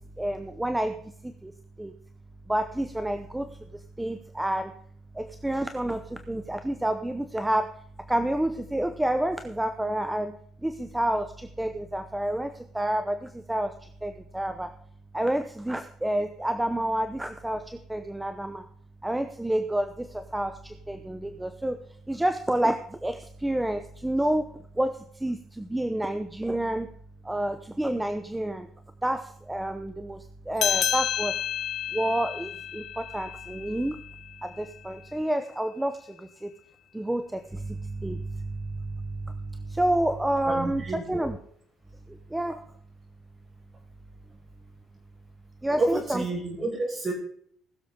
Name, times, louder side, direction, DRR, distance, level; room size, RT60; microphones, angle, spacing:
voice 1, 0.2-1.5 1.8-1.9 2.5-3.5 4.0-4.7 5.1-7.7 8.1-10.3 10.6-14.7 15.1-18.7 19.0-21.8 22.1-24.5 24.8-26.9 27.2-28.7 29.0-31.4 31.9-34.0 34.4-36.5 36.9-41.4 42.1-42.6 45.6-46.2, right 1 dB, 5° right, 8 dB, 0.8 m, -29 dB
sound 1, 30.6-35.5, left 10 dB, 55° left, 0.5 m, -31 dB
voice 2, 40.5-41.3 45.8-47.1, right 2 dB, 30° right, -1 dB, 5.2 m, -29 dB
20.0 x 7.0 x 3.8 m, 0.63 s
cardioid pair, 115°, 0 cm